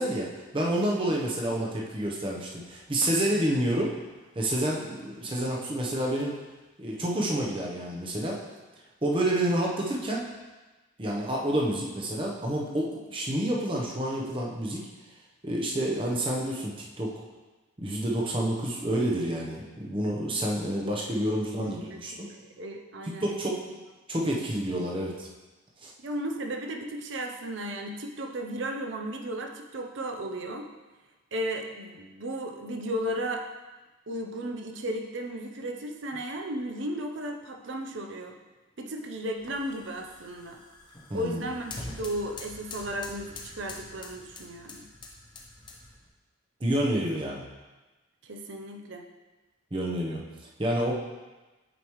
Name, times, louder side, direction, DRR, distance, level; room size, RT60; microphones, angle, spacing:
voice 1, 0.0-3.9 4.4-6.3 6.8-8.4 9.0-10.3 11.0-14.8 15.4-17.1 17.8-22.3 23.2-23.6 24.1-25.3 25.8-25.9 41.1-41.4 46.6-47.4 49.7-50.2 50.6-50.9, right 1 dB, 25° right, -2 dB, 0.8 m, -29 dB
voice 2, 22.3-23.4 26.0-30.7 31.3-33.5 34.1-38.4 38.8-40.6 41.1-44.9 48.2-49.0, right 1 dB, 60° right, 3 dB, 0.7 m, -35 dB
sound 1, 39.4-46.1, left 2 dB, 25° left, 0.7 m, -45 dB
8.9 x 4.9 x 3.1 m, 1.2 s
head